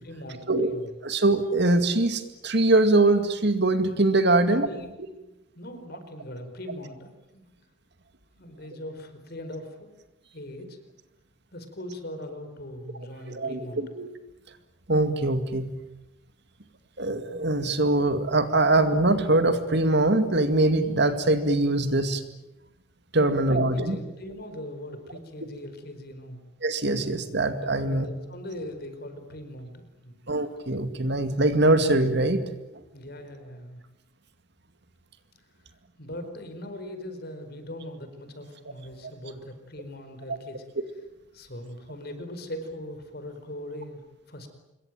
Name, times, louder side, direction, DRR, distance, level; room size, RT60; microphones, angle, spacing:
voice 1, 0.0-1.0 4.3-7.4 8.4-10.0 10.3-10.8 11.5-13.8 23.2-26.4 27.8-30.1 32.9-33.8 36.0-40.7 41.3-44.5, left 1 dB, 55° left, 8 dB, 4.6 m, -40 dB
voice 2, 1.0-4.7 13.3-14.1 14.9-15.7 17.0-22.2 23.1-24.0 26.6-28.1 30.3-32.4, right 2 dB, 60° right, 9 dB, 2.2 m, -22 dB
26.5 x 22.5 x 9.2 m, 0.98 s
head